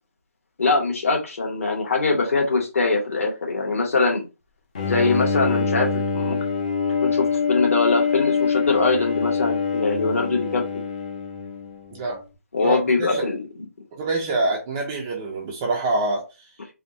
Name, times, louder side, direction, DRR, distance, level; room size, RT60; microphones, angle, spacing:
voice 1, 0.6-4.2 4.8-6.4 7.0-10.8 12.5-13.4, left 3 dB, 60° left, 2.0 m, -22 dB
Bowed string instrument, 4.7-12.0, left 5 dB, 30° left, 0.7 m, -25 dB
voice 2, 11.9-12.2 12.6-13.3 13.9-16.5, right 2 dB, 10° right, 0.4 m, -26 dB
4.2 x 2.6 x 4.2 m
hypercardioid pair, 175°, 8 cm